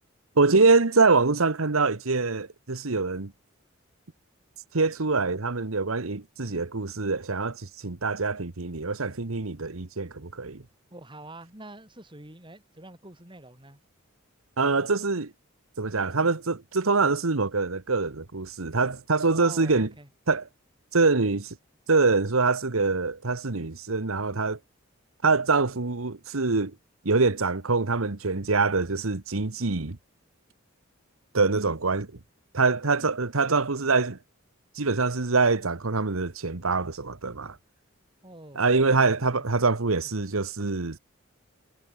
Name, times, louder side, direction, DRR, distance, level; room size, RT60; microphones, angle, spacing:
voice 1, 0.4-3.3 4.7-10.6 14.6-15.3 15.8-19.9 20.3-20.4 20.9-21.6 21.9-24.6 25.2-26.7 27.0-30.0 31.3-32.2 32.5-34.2 34.7-37.6 38.5-41.0, right 4 dB, 85° right, 1.3 m, -24 dB
voice 2, 10.9-13.8 19.3-20.1 38.2-38.7 39.3-39.4, right 2 dB, 25° right, 6.5 m, -46 dB
head